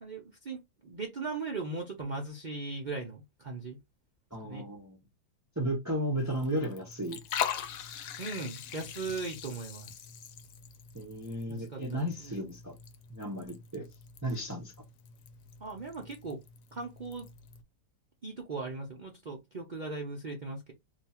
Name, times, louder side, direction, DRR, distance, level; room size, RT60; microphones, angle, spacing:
voice 1, 0.0-3.8 4.4-4.7 8.2-9.9 11.5-12.4 15.6-16.4 16.7-17.3 18.2-20.7, right 3 dB, 70° right, 0.4 m, -38 dB
voice 2, 4.3-5.0 5.6-7.2 10.9-12.7 13.1-13.8 14.2-14.7, right 1 dB, 15° right, 0.6 m, -34 dB
Liquid, 6.2-17.6, left 9 dB, 75° left, 1.1 m, -42 dB
2.7 x 2.4 x 4.2 m
omnidirectional pair, 1.8 m